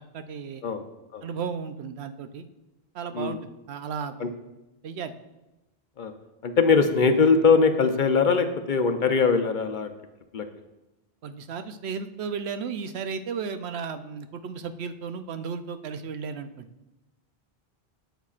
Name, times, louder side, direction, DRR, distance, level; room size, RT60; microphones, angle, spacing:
voice 1, 0.1-0.7 1.2-2.4 2.9-4.4 4.8-5.1 11.2-16.7, right 6 dB, 85° right, 9 dB, 0.9 m, -34 dB
voice 2, 6.4-9.9 10.3-10.5, left 5 dB, 55° left, 7 dB, 0.7 m, -21 dB
12.5 x 8.0 x 2.4 m, 0.98 s
omnidirectional pair, 1.1 m